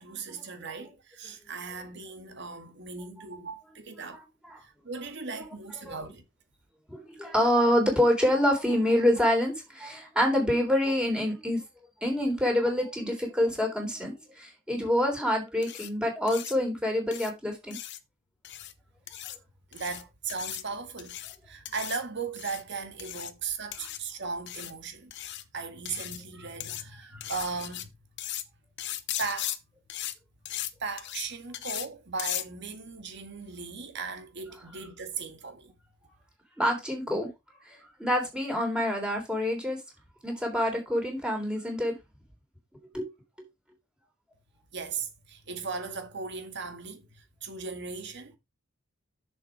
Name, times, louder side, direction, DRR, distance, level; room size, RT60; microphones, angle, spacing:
voice 1, 0.0-4.3 4.6-6.2 19.7-21.2 21.4-25.1 25.5-27.9 29.2-29.6 30.8-35.7 44.7-48.4, right 4 dB, 55° right, 1.9 m, -37 dB
voice 2, 6.9-11.6 12.0-17.8 36.6-37.3 37.7-39.8 40.2-41.9 42.9-43.1, left 1 dB, 5° right, 3.5 m, -26 dB
sound 1, 15.6-15.9 16.3-16.5 17.1-17.3 17.7-18.0 18.4-18.7 19.1-19.4 19.7-20.0 20.3-20.6 21.0-21.4 21.7-22.0 22.4-22.6 23.0-23.3 23.7-24.0 24.5-24.7 25.1-25.4 25.9-26.2 26.6-26.8 27.2-27.8 28.2-28.4 28.8-29.6 29.9-30.1 30.5-30.7 31.0-31.3 31.5-31.9 32.2-32.4, left 13 dB, 55° left, 0.9 m, -37 dB
7.0 x 6.4 x 4.8 m
head